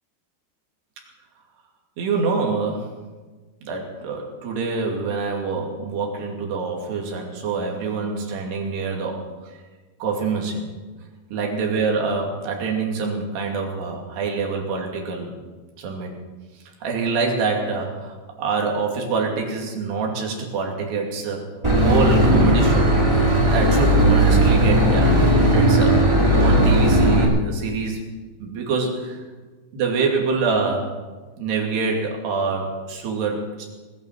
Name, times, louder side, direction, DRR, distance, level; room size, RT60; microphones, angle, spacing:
voice 1, 2.0-2.9 3.6-9.2 10.0-10.7 11.3-15.3 15.8-16.1 16.8-21.4 21.8-22.9 23.5-26.0 26.3-28.0 28.4-29.2 29.7-31.0 31.4-33.7, right 4 dB, 65° right, 0 dB, 4.4 m, -25 dB
Boat Water vehicle / Engine, 21.6-27.2, right 1 dB, 15° right, 1.0 m, -16 dB
19.5 x 9.5 x 7.5 m, 1.3 s
omnidirectional pair, 5.4 m